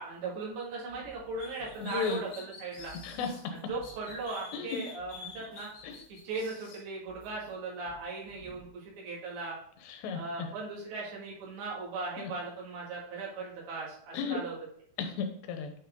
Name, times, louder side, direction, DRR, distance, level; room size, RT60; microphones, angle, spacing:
voice 1, 0.0-2.9 3.5-5.7 6.2-9.6 10.1-14.6, right 3 dB, 90° right, -5 dB, 4.4 m, -38 dB
sound 1, 0.9-2.5 2.8-6.7 7.1-7.6 7.9-8.7, right 3 dB, 70° right, 3.7 m, -57 dB
sound 2, 1.4-3.4 3.8-6.8, left 5 dB, 60° left, 3.3 m, -48 dB
voice 2, 1.8-2.2 3.0-3.5 4.5-4.8 5.8-6.0 9.8-10.5 12.2-12.3 14.1-14.4 15.0-15.7, left 5 dB, 85° left, 6 dB, 3.1 m, -34 dB
9.0 x 4.7 x 3.8 m, 0.63 s
omnidirectional pair, 4.9 m